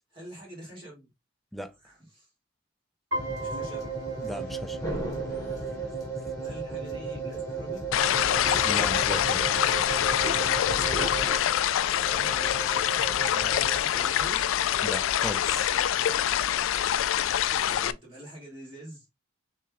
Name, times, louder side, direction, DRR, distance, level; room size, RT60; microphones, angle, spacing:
voice 1, 0.1-1.1 1.8-2.3 3.4-3.8 6.4-7.8 11.9-12.3 13.3-14.5 17.5-19.0, right 1 dB, 25° right, 2.4 m, -45 dB
sound 1, 3.1-13.8, right 4 dB, 15° left, 1.6 m, -34 dB
Piano, 3.1-5.1, left 1 dB, 70° right, 2.0 m, -37 dB
voice 2, 4.2-4.8 8.6-9.6 14.8-15.7, equal, ahead, 0.4 m, -37 dB
sound 2, 7.9-17.9, left 11 dB, 85° left, 0.3 m, -25 dB
6.2 x 3.4 x 2.4 m
head